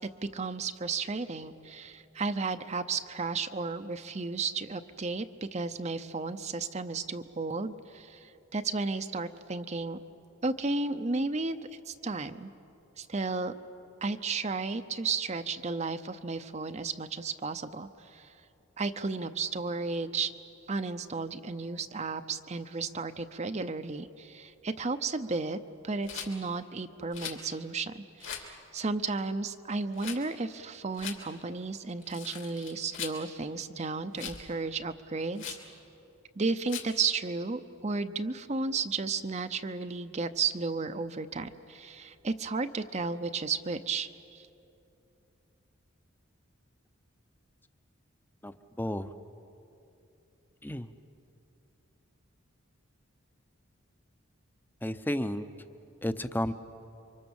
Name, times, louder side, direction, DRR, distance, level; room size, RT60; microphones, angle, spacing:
voice 1, 0.0-10.0 10.4-11.6 11.9-12.5 13.0-13.5 14.0-18.3 18.8-20.3 20.7-25.6 25.8-35.6 36.4-44.5, right 4 dB, 35° right, 9 dB, 0.7 m, -33 dB
Rattle, 26.0-26.3 27.1-27.4 28.2-28.5 29.9-30.2 30.9-31.2 32.0-33.2 34.1-34.4 35.4-35.7 36.7-37.0, left 8 dB, 65° left, 3.0 m, -40 dB
voice 2, 48.4-49.1 50.6-50.9 54.8-55.5 56.0-56.5, left 1 dB, 10° left, 11 dB, 0.7 m, -32 dB
29.0 x 24.5 x 7.2 m, 2.9 s
head